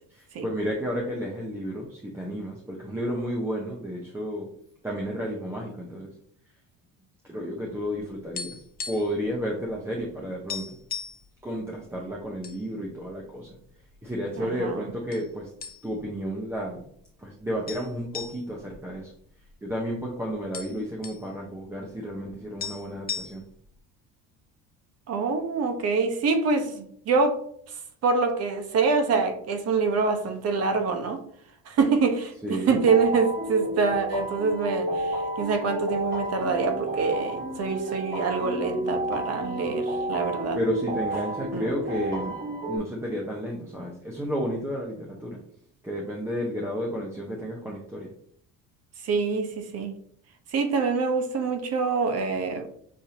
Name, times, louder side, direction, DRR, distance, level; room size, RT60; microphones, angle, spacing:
voice 1, 0.1-4.5 4.8-6.1 7.3-10.7 11.4-13.6 14.0-15.5 15.8-16.8 17.2-19.1 19.6-23.4 32.4-32.8 40.5-45.4 45.8-48.1, equal, 5° right, -2 dB, 0.7 m, -32 dB
sound 1, 8.2-9.2 9.5-9.7 10.0-10.1 10.5-11.2 11.9-12.6 13.0-13.1 13.8-14.4 15.1-15.3 15.6-16.1 16.5-16.6 17.7-19.7 20.0-20.1 20.3-21.2 22.3-22.4 22.6-23.7, left 6 dB, 25° left, 0.5 m, -37 dB
voice 2, 14.4-14.8 25.1-27.4 28.0-31.2 31.7-40.6 41.5-41.7 49.0-50.0 50.5-52.7, right 4 dB, 45° right, 6 dB, 0.9 m, -25 dB
sound 2, 32.7-42.8, right 1 dB, 30° right, 1.7 m, -31 dB
6.5 x 2.7 x 2.8 m, 0.65 s
cardioid pair, 125°, 34 cm